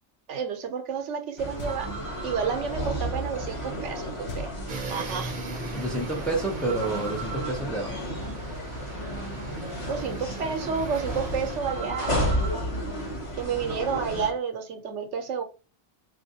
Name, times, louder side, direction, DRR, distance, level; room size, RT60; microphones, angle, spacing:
voice 1, 0.3-1.9 2.2-4.5 4.9-5.3 9.9-12.4 13.3-15.4, right 6 dB, 85° right, 1.0 m, -30 dB
sound 1, 1.4-14.3, equal, 30° left, 0.9 m, -32 dB
sound 2, 1.6-2.2 4.3-5.3, left 2 dB, 70° left, 0.8 m, -40 dB
sound 3, 4.7-11.6, right 3 dB, 50° right, 0.7 m, -40 dB
voice 2, 5.7-8.1, right 2 dB, ahead, 0.5 m, -29 dB
3.4 x 2.5 x 2.7 m
omnidirectional pair, 1.2 m